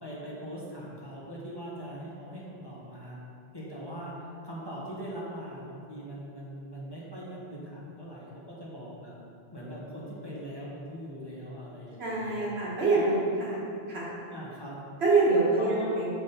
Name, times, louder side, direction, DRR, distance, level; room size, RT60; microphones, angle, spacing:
voice 1, 0.0-3.2 3.5-9.1 9.5-12.5 12.9-13.3 14.3-14.8 15.5-16.1, equal, 25° left, -6 dB, 1.3 m, -41 dB
voice 2, 12.0-13.1 13.4-13.6 13.9-14.1 15.0-16.1, right 3 dB, 90° right, -6 dB, 1.8 m, -25 dB
6.3 x 5.6 x 4.0 m, 2.6 s
omnidirectional pair, 1.0 m